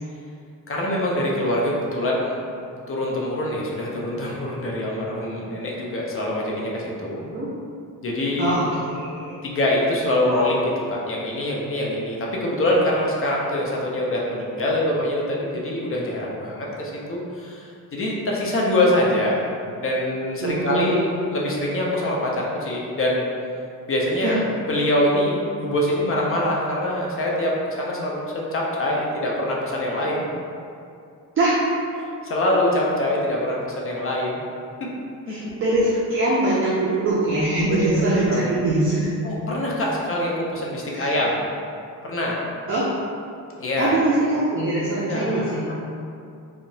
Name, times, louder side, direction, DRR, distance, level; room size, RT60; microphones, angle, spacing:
voice 1, 0.7-2.4 2.9-7.2 8.0-8.6 9.4-19.4 19.8-21.1 21.3-23.3 23.9-24.4 24.7-30.3 32.2-34.4 34.8-34.9 35.3-35.5 37.7-37.8 38.3-38.5 39.2-41.3 42.0-42.4 43.6-44.0 44.9-45.7, left 1 dB, 40° left, -3 dB, 0.5 m, -24 dB
voice 2, 8.4-9.3 20.4-21.0 24.2-24.3 31.4-31.6 35.3-39.1 40.9-41.1 42.7-42.9 43.8-45.7, right 2 dB, 40° right, -6 dB, 0.4 m, -22 dB
2.7 x 2.0 x 2.6 m, 2.5 s
cardioid pair, 110°, 34 cm